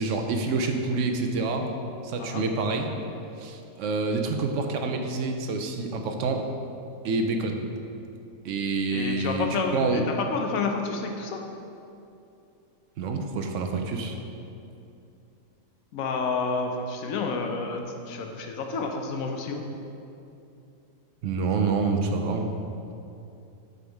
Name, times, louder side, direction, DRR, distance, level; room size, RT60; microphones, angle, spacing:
voice 1, 0.0-1.7 2.0-2.9 3.4-6.4 7.0-7.6 8.4-10.0 13.0-14.2 21.2-22.5, right 3 dB, 70° right, 4 dB, 0.9 m, -27 dB
voice 2, 8.9-11.4 15.9-19.6, left 4 dB, 85° left, 3 dB, 1.1 m, -30 dB
7.9 x 3.6 x 4.5 m, 2.7 s
omnidirectional pair, 1.4 m